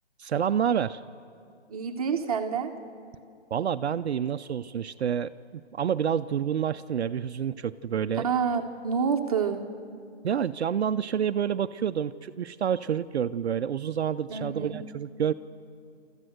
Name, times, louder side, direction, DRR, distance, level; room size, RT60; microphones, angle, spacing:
voice 1, 0.2-1.0 3.5-8.3 10.2-15.3, right 8 dB, 65° right, 10 dB, 0.6 m, -28 dB
voice 2, 1.7-2.7 8.2-9.6 14.3-14.8, right 6 dB, 35° right, 4 dB, 1.0 m, -28 dB
27.0 x 14.0 x 7.8 m, 2.4 s
hypercardioid pair, 160°, 34 cm